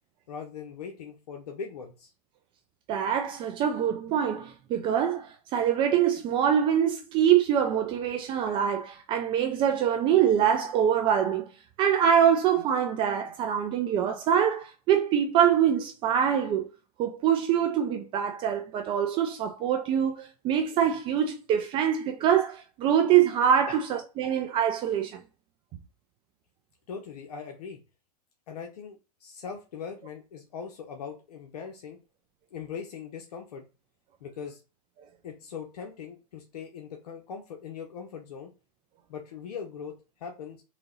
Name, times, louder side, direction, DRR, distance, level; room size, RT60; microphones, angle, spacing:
voice 1, 0.3-2.1 23.7-23.8 26.9-27.8 28.5-32.0 32.5-33.7 34.2-34.6 35.2-38.5 39.1-39.9 40.2-40.6, left 6 dB, 75° left, 1.0 m, -40 dB
voice 2, 2.9-11.5 11.8-16.7 17.0-25.2, right 9 dB, 25° right, 0.4 m, -24 dB
3.9 x 2.8 x 3.8 m
hypercardioid pair, 140°, 20 cm